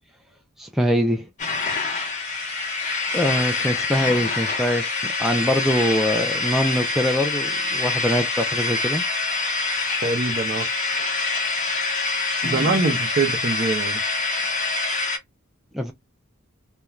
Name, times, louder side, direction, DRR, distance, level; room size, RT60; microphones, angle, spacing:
voice 1, 0.6-1.3 3.1-9.0 12.4-12.8 15.7-15.9, equal, ahead, 0.3 m, -23 dB
sound 1, 1.4-15.2, left 3 dB, 35° left, 0.9 m, -25 dB
voice 2, 10.0-10.7 12.4-14.0, right 3 dB, 40° right, 0.6 m, -24 dB
2.3 x 2.2 x 3.0 m
head